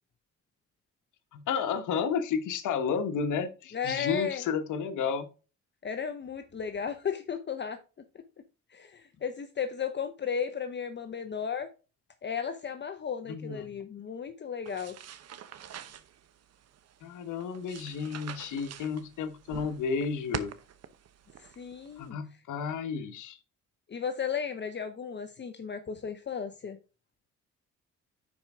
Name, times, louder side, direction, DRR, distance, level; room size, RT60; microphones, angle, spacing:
voice 1, 1.3-5.2 13.3-13.7 17.0-20.5 22.0-23.4, left 6 dB, 80° left, 1.2 m, -32 dB
voice 2, 3.7-4.4 5.8-7.8 8.7-11.7 12.2-15.0 21.4-22.2 23.9-26.8, left 7 dB, 35° left, 0.8 m, -34 dB
sound 1, 14.7-22.1, right 9 dB, 55° right, 0.9 m, -45 dB
10.5 x 4.6 x 3.6 m
cardioid pair, 90°, 30 cm